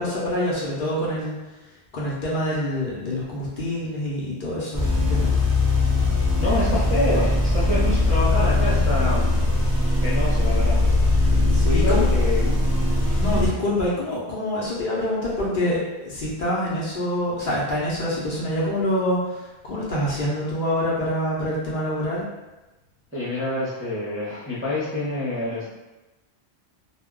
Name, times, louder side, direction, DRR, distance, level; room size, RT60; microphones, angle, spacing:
voice 1, 0.0-1.5 1.9-5.3 11.2-12.1 13.2-22.2, left 1 dB, 55° left, -6 dB, 0.7 m, -26 dB
sound 1, 4.7-13.5, left 2 dB, 20° left, 0.9 m, -20 dB
voice 2, 6.4-9.4 10.0-10.8 11.6-12.5 13.2-13.4 23.1-25.7, left 1 dB, 15° right, -10 dB, 0.5 m, -26 dB
2.2 x 2.0 x 3.6 m, 1.1 s
omnidirectional pair, 1.1 m